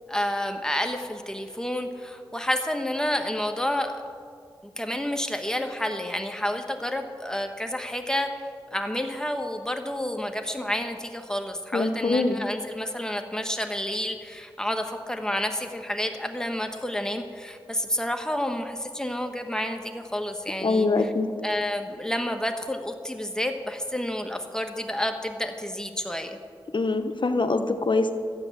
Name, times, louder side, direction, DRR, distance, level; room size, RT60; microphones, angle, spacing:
voice 1, 0.1-3.9 4.6-8.3 8.7-21.1 21.4-26.4, left 1 dB, 5° left, 5 dB, 1.5 m, -30 dB
voice 2, 11.7-12.4 20.6-21.3 26.7-28.1, left 3 dB, 55° left, 7 dB, 1.0 m, -23 dB
13.5 x 8.7 x 7.4 m, 2.2 s
cardioid pair, 45°, 10 cm